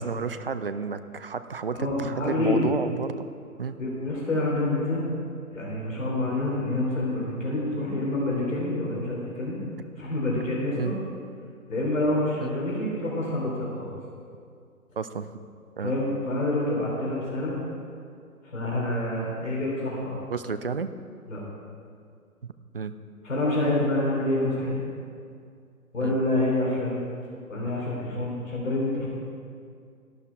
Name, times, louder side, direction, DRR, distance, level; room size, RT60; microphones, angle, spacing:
voice 1, 0.0-3.3 3.6-3.8 10.8-11.0 12.4-12.5 15.0-15.4 15.8-15.9 20.3-20.9 22.4-22.9 26.0-26.2, right 5 dB, 40° right, 11 dB, 0.4 m, -31 dB
voice 2, 1.7-2.6 3.8-5.0 5.5-9.6 10.0-10.9 11.7-13.9 15.8-17.5 18.4-20.2 21.3-21.4 23.2-24.9 25.9-27.0 27.5-29.1, left 1 dB, 60° left, -3 dB, 3.4 m, -27 dB
12.5 x 12.0 x 4.5 m, 2.4 s
figure-of-eight pair, 140°, 45 cm